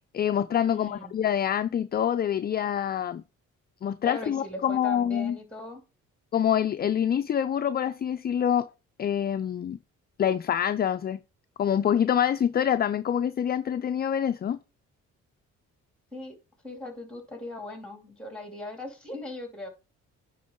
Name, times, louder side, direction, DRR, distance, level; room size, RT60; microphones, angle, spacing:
voice 1, 0.1-3.2 3.8-5.4 6.3-8.7 9.0-9.8 10.2-11.2 11.6-14.6, left 9 dB, 35° left, 0.4 m, -26 dB
voice 2, 0.7-1.1 4.0-5.8 16.1-16.4 16.6-19.7, left 2 dB, 5° left, 2.5 m, -39 dB
9.3 x 3.9 x 3.6 m
cardioid pair, 90°, 30 cm